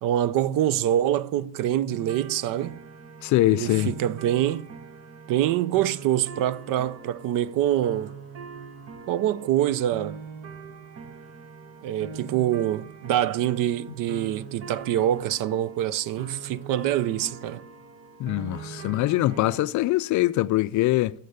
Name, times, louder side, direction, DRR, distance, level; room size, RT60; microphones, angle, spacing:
voice 1, 0.0-2.8 3.5-4.7 5.3-8.1 9.1-10.2 11.8-17.6, right 12 dB, 55° right, 0.6 m, -25 dB
sound 1, 1.9-19.7, right 5 dB, 35° right, 1.3 m, -42 dB
voice 2, 3.2-3.9 18.2-21.1, left 16 dB, 50° left, 0.5 m, -23 dB
13.0 x 6.7 x 6.8 m
cardioid pair, 125°, 40 cm